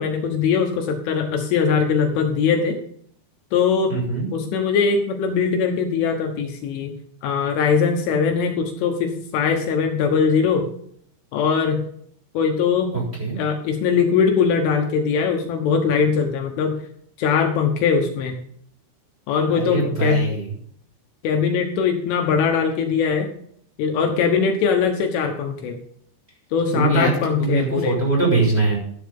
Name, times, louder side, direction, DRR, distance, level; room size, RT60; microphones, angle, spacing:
voice 1, 0.0-2.8 3.5-4.0 4.3-6.9 7.2-10.7 11.3-11.9 12.4-12.9 13.4-16.8 17.2-18.4 19.3-20.3 21.2-23.3 23.8-25.8 26.5-28.0, left 6 dB, 75° left, 3 dB, 3.6 m, -21 dB
voice 2, 3.9-4.3 12.9-13.4 19.5-20.5 26.7-27.1 27.4-28.8, right 3 dB, 10° right, -3 dB, 5.3 m, -22 dB
13.5 x 11.5 x 3.7 m, 0.63 s
omnidirectional pair, 6.0 m